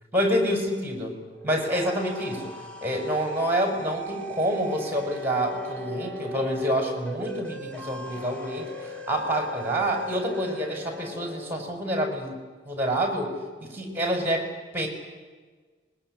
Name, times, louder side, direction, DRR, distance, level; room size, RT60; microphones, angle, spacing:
voice 1, 0.1-1.1 1.4-12.4 12.6-13.3 13.6-14.9, equal, 10° right, 4 dB, 6.0 m, -27 dB
sound 1, 1.3-11.7, right 1 dB, 5° left, 3.2 m, -39 dB
26.0 x 22.5 x 9.8 m, 1.4 s
head